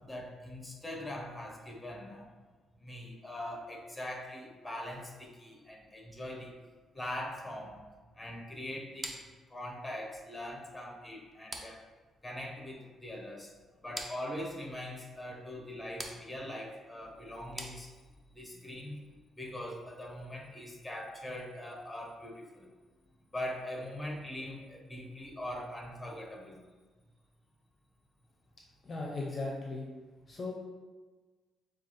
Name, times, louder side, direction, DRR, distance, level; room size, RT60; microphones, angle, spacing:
voice 1, 0.0-2.3 2.8-6.6 6.9-7.8 8.2-9.2 9.5-11.8 12.2-13.5 13.8-18.0 18.3-19.0 19.3-22.7 23.3-26.6, left 1 dB, 10° left, 0 dB, 0.9 m, -42 dB
button clicks, 9.0-18.4, right 1 dB, 10° right, 0.6 m, -48 dB
voice 2, 28.8-29.9 30.3-30.5, left 3 dB, 35° left, -1 dB, 0.6 m, -37 dB
6.7 x 2.4 x 3.1 m, 1.4 s
cardioid pair, 90°, 0 cm